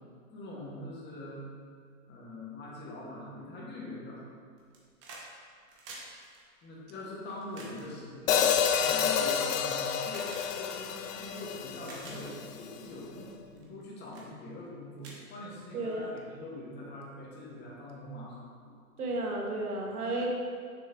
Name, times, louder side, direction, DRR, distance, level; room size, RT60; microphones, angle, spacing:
voice 1, 0.3-1.5 2.1-4.3 6.6-8.5 8.8-18.5, left 1 dB, 25° left, -5 dB, 1.7 m, -43 dB
sound 1, 4.6-5.3 5.6-9.5 10.1-10.5 11.2-11.3 11.7-12.2 12.8-13.0 13.6-13.8 14.1-14.3 14.7-14.8 15.0-15.9 17.1-17.2, right 3 dB, 25° right, 1.2 m, -49 dB
Hi-hat, 8.3-12.5, left 7 dB, 65° left, 0.6 m, -29 dB
voice 2, 15.7-16.2 19.0-20.3, right 2 dB, 90° right, 0 dB, 1.3 m, -33 dB
6.8 x 6.2 x 3.0 m, 2.1 s
hypercardioid pair, 125°, 43 cm